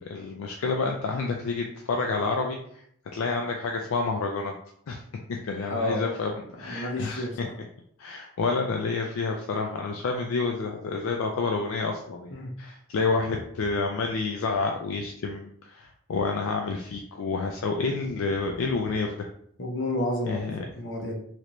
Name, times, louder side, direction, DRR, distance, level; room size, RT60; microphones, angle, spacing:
voice 1, 0.0-2.8 3.1-4.6 4.9-5.0 5.3-7.5 8.0-19.1 20.3-20.6, left 4 dB, 70° left, 2 dB, 0.3 m, -29 dB
voice 2, 5.7-6.0 6.6-7.5 12.3-12.5 19.6-21.2, left 1 dB, 55° left, 0 dB, 0.7 m, -30 dB
3.1 x 2.5 x 3.0 m, 0.67 s
head